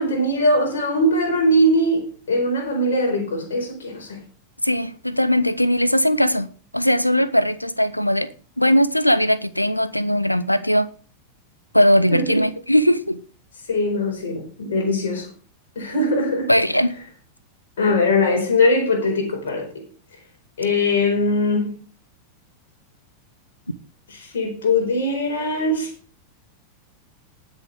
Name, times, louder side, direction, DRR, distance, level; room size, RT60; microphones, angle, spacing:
voice 1, 0.0-4.2 12.1-12.4 13.7-15.3 15.7-16.5 17.8-19.7 20.6-21.7 24.1-25.9, left 1 dB, 60° left, 4.8 m, -21 dB
voice 2, 4.6-6.5 6.7-8.3 8.6-10.9 11.7-13.2 16.5-16.9, equal, 90° left, 0.8 m, -19 dB
19.5 x 6.5 x 3.5 m
figure-of-eight pair, 90°, 0 cm